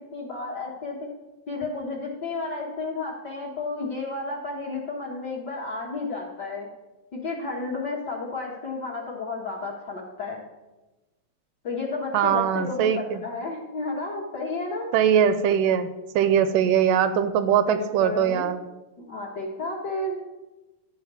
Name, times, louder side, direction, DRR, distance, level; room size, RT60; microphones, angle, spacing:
voice 1, 0.1-1.0 1.5-6.7 7.1-10.4 11.6-14.9 17.7-18.5 19.0-20.2, left 3 dB, 65° left, -3 dB, 1.0 m, -32 dB
voice 2, 12.1-13.2 14.9-15.9 16.2-18.6, right 8 dB, 80° right, 11 dB, 2.0 m, -21 dB
13.0 x 4.6 x 8.2 m, 1.1 s
omnidirectional pair, 4.1 m